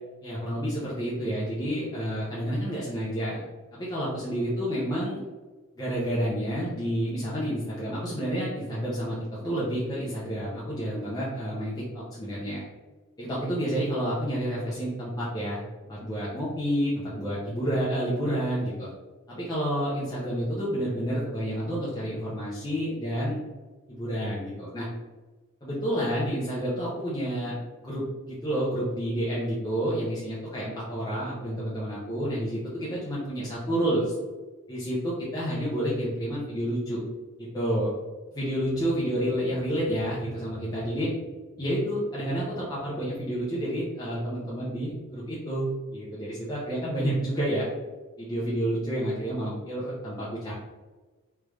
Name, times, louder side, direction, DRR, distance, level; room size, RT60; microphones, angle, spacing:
voice 1, 0.2-3.4 3.7-5.2 5.8-12.6 13.2-15.6 15.9-18.9 19.3-23.4 23.9-24.9 25.6-27.6 27.8-34.2 34.7-37.0 37.4-37.9 38.3-41.1 41.6-47.7 48.2-50.5, equal, 15° left, -8 dB, 0.6 m, -29 dB
3.3 x 2.4 x 3.2 m, 1.3 s
head